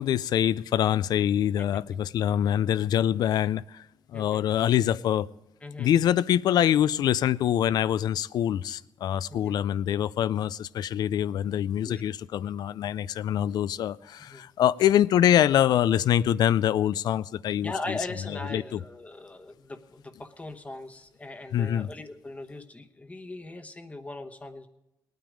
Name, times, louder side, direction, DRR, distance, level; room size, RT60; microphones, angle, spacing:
voice 1, 0.0-3.8 4.1-5.3 5.8-18.0 18.3-18.8 21.5-21.9, left 10 dB, 75° left, 0.4 m, -25 dB
voice 2, 1.6-2.0 4.1-4.4 5.6-5.9 9.3-9.6 11.8-12.0 14.3-14.5 17.6-24.7, left 2 dB, 20° left, 1.1 m, -40 dB
19.5 x 9.3 x 5.0 m
cardioid pair, 105°, 7 cm